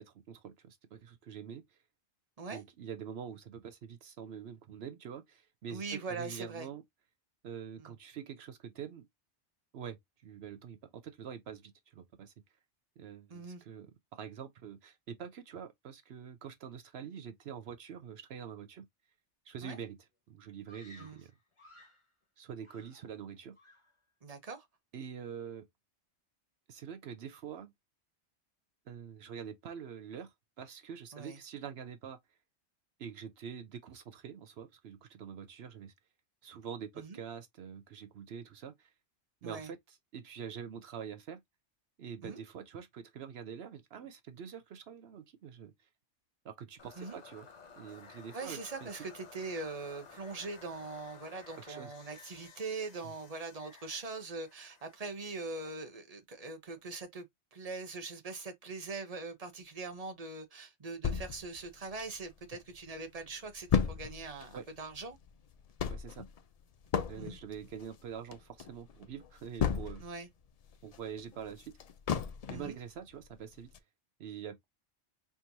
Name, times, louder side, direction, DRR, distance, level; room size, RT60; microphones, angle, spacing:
voice 1, 0.0-1.8 2.5-6.8 7.4-9.1 9.7-12.3 13.0-18.9 19.5-20.0 20.3-21.3 22.4-23.6 24.9-25.7 26.7-27.7 28.9-32.2 33.0-35.9 36.4-38.9 39.4-41.4 42.0-45.7 46.4-47.5 47.8-49.0 51.7-51.9 64.5-64.6 65.9-66.3 67.1-70.0 70.8-71.8 72.5-73.7 74.2-74.6, right 7 dB, 65° right, 0.8 m, -45 dB
voice 2, 5.7-6.7 7.8-7.9 13.3-13.6 19.6-19.8 21.0-21.2 24.2-24.7 31.1-31.4 37.0-37.2 39.4-39.7 42.2-42.4 47.0-47.2 48.3-57.3 57.5-65.2 67.2-67.4 70.0-70.3 72.5-72.8, right 3 dB, 35° right, 0.9 m, -42 dB
Screaming, 20.7-22.1 22.6-23.3 23.6-24.0, left 1 dB, 25° left, 1.3 m, -58 dB
sound 1, 46.8-55.8, left 5 dB, 40° left, 0.8 m, -55 dB
sound 2, 61.0-62.6 63.0-63.1 63.2-70.3 70.6-72.8 73.2-73.3 73.7-73.8, left 7 dB, 70° left, 0.3 m, -34 dB
4.4 x 3.5 x 2.6 m
omnidirectional pair, 1.2 m